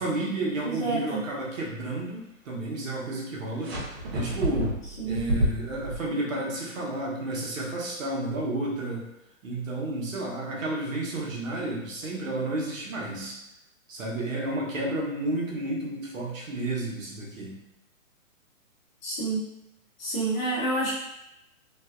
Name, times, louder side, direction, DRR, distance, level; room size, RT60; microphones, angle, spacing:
voice 1, 0.0-3.7 4.1-4.8 5.1-9.1 9.4-13.4 13.9-17.5, right 2 dB, 70° right, -3 dB, 0.9 m, -31 dB
voice 2, 0.6-1.2 5.0-5.2 19.0-19.4 20.0-20.9, right 2 dB, 35° left, -8 dB, 0.9 m, -28 dB
sound 1, 3.6-6.0, equal, 50° right, 0.7 m, -29 dB
2.6 x 2.1 x 2.4 m, 0.87 s
hypercardioid pair, 150°, 41 cm